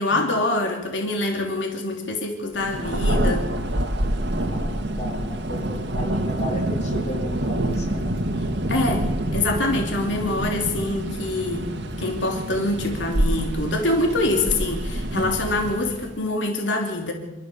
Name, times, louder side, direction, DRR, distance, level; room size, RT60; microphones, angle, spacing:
voice 1, 0.0-3.5 8.7-17.1, left 2 dB, 90° left, 2 dB, 3.2 m, -25 dB
Thunder, 2.6-16.2, right 1 dB, 70° right, 2.1 m, -26 dB
voice 2, 4.5-8.1 14.6-14.7, equal, 35° left, 2 dB, 4.1 m, -34 dB
27.0 x 14.0 x 7.0 m, 1.1 s
head